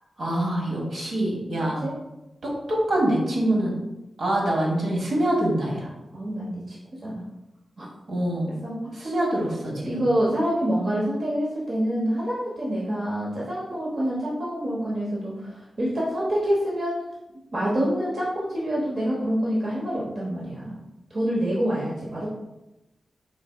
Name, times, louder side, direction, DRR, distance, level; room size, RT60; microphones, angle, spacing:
voice 1, 0.2-1.8 2.4-3.7 4.2-5.9 8.1-8.5 9.0-10.0, right 1 dB, 75° right, -2 dB, 1.4 m, -25 dB
voice 2, 6.1-7.2 7.8-7.9 8.6-9.1 9.8-17.0 17.5-20.8 21.1-22.3, equal, 55° right, -6 dB, 0.9 m, -27 dB
4.6 x 3.9 x 2.2 m, 0.96 s
wide cardioid pair, 80°, 0 cm